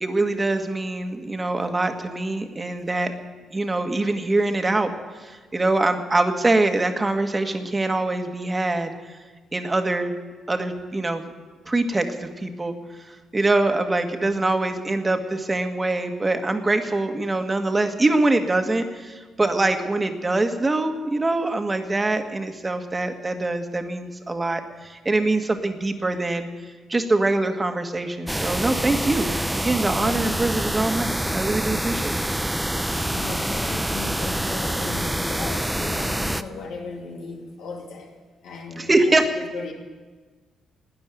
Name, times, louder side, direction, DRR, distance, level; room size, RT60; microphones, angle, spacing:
voice 1, 0.0-3.1 3.5-4.9 5.2-8.9 9.5-10.2 10.5-11.2 11.7-12.7 13.3-26.5 26.9-29.3 29.5-32.1 38.8-39.3, right 2 dB, 25° right, 6 dB, 1.6 m, -23 dB
sound 1, 28.3-36.4, right 1 dB, 5° right, 0.6 m, -26 dB
voice 2, 29.9-30.4 32.9-38.2 38.4-39.7, left 4 dB, 80° left, 0 dB, 2.7 m, -36 dB
13.0 x 9.6 x 9.2 m, 1.4 s
cardioid pair, 75°, 0 cm